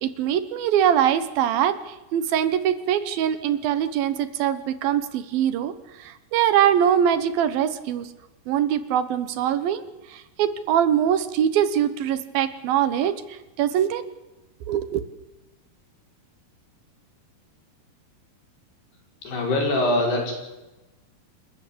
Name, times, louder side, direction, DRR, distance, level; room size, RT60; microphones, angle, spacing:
voice 1, 0.0-1.8 2.1-5.7 6.3-8.1 8.5-9.8 10.4-13.1 13.6-14.0 14.7-15.0, right 9 dB, 70° right, 13 dB, 2.8 m, -22 dB
voice 2, 19.2-20.3, left 1 dB, 85° left, 1 dB, 7.1 m, -23 dB
27.5 x 13.5 x 8.5 m, 1.0 s
omnidirectional pair, 4.6 m